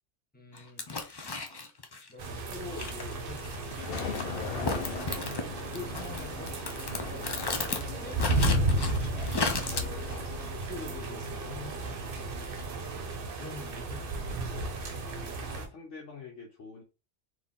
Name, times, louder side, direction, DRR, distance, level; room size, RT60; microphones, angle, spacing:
voice 1, 0.3-0.9 1.5-1.7 2.1-4.1 5.3-6.6 6.9-7.4 7.6-9.2 9.6-10.2 10.5-11.8 13.3-14.7, left 3 dB, 10° left, 0.8 m, -46 dB
sound 1, 0.5-2.1 2.7-5.4 5.7-7.8 8.1-9.8, left 3 dB, 35° left, 0.4 m, -34 dB
sound 2, 2.2-15.7, right 2 dB, 50° right, 0.9 m, -34 dB
sound 3, 3.8-10.5, left 5 dB, 55° left, 1.0 m, -40 dB
voice 2, 15.4-16.8, left 4 dB, 75° left, 1.2 m, -46 dB
4.1 x 2.8 x 3.6 m
omnidirectional pair, 1.2 m